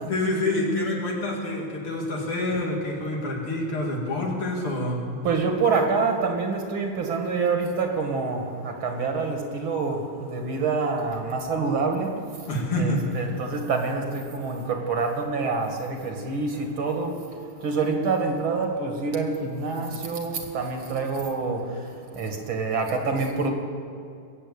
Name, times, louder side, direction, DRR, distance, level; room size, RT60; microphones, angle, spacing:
voice 1, 0.1-5.0 12.5-13.1, left 2 dB, 80° left, -1 dB, 3.4 m, -27 dB
voice 2, 5.2-12.2 12.7-17.2 17.6-21.9 22.1-23.5, right 4 dB, 70° right, 3 dB, 2.5 m, -26 dB
21.5 x 7.7 x 8.6 m, 2.4 s
omnidirectional pair, 2.4 m